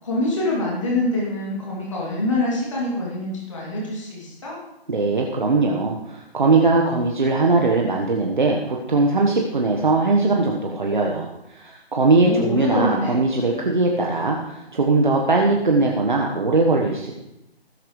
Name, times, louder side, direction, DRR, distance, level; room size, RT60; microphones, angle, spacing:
voice 1, 0.0-4.6 12.1-13.2, left 2 dB, 30° left, -5 dB, 2.7 m, -25 dB
voice 2, 4.9-17.1, right 3 dB, 50° right, 0 dB, 1.2 m, -20 dB
19.0 x 8.8 x 3.2 m, 0.88 s
hypercardioid pair, 175°, 32 cm